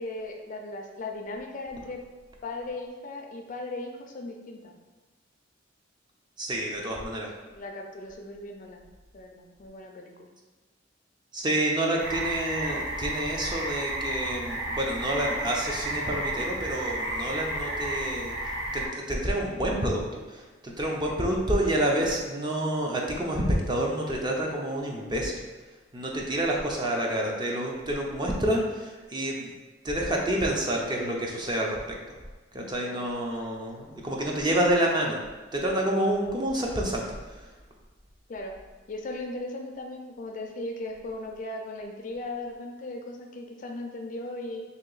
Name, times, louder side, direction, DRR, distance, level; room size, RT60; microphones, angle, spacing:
voice 1, 0.0-2.0 2.4-4.7 7.5-8.8 9.1-10.3 21.1-21.3 32.8-33.1 38.3-38.6 38.9-44.6, left 2 dB, 45° left, 2 dB, 0.4 m, -37 dB
voice 2, 6.4-7.3 11.3-18.4 18.7-25.4 25.9-29.5 29.8-31.8 32.1-32.2 32.5-35.2 35.5-37.5, right 1 dB, 25° right, -1 dB, 0.5 m, -28 dB
sound 1, 12.0-18.9, right 1 dB, 65° right, 1.0 m, -32 dB
2.8 x 2.8 x 3.9 m, 1.2 s
head